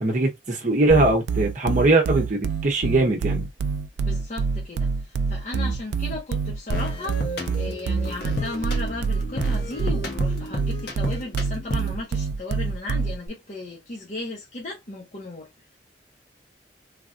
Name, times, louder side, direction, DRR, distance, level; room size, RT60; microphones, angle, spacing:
voice 1, 0.0-3.5, right 2 dB, 45° right, 0.7 m, -21 dB
sound 1, 0.9-13.3, right 5 dB, 80° right, 0.4 m, -26 dB
voice 2, 4.0-15.5, left 2 dB, 40° left, 0.8 m, -35 dB
sound 2, 6.7-12.0, left 1 dB, 65° left, 1.0 m, -33 dB
3.3 x 2.3 x 2.5 m
head